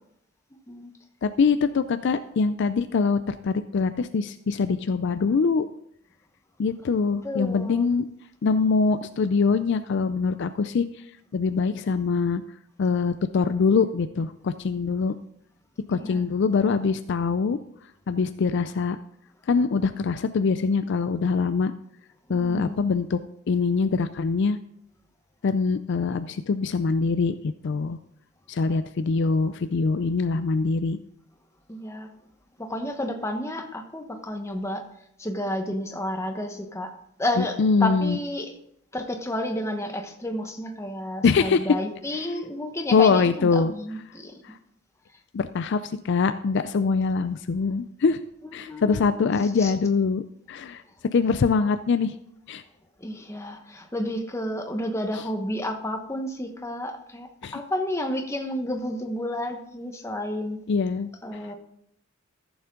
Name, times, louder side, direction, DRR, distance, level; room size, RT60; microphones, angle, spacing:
voice 1, 1.2-5.7 6.6-8.1 8.4-10.9 11.3-12.4 12.8-15.1 15.9-17.6 18.1-19.0 19.5-21.7 22.3-23.2 23.5-24.6 25.4-28.0 28.5-31.0 37.4-38.2 41.2-41.7 42.9-43.7 44.4-44.5 45.3-48.2 48.5-50.8 51.1-52.1 52.5-52.6 57.4-57.6 60.7-61.1, left 4 dB, 55° left, 11 dB, 0.4 m, -23 dB
voice 2, 7.2-7.9 15.9-16.2 22.3-22.8 31.7-32.1 32.6-34.9 35.2-36.9 37.2-38.5 38.9-44.4 48.4-49.1 49.6-49.7 53.0-60.6 61.2-61.5, left 1 dB, 15° left, 4 dB, 1.1 m, -31 dB
14.5 x 7.1 x 3.7 m, 0.74 s
head